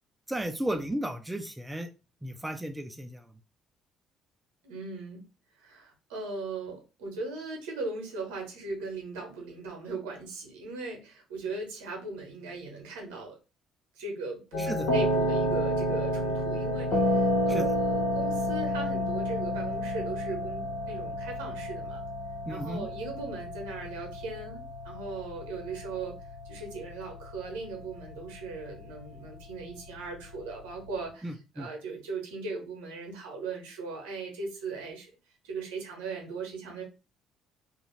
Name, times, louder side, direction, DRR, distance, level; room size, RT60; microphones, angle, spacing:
voice 1, 0.3-1.9 2.2-3.2 14.6-14.9 17.5-17.7 22.5-22.9 31.2-31.7, right 1 dB, 10° right, 6 dB, 0.4 m, -34 dB
voice 2, 4.6-5.2 5.6-13.4 14.0-22.0 22.5-26.2 26.4-35.1 35.4-36.8, right 3 dB, 80° right, 1 dB, 0.9 m, -38 dB
sound 1, 14.5-31.0, equal, 70° left, 0.7 m, -31 dB
2.5 x 2.3 x 3.1 m, 0.30 s
hypercardioid pair, 50°, 0 cm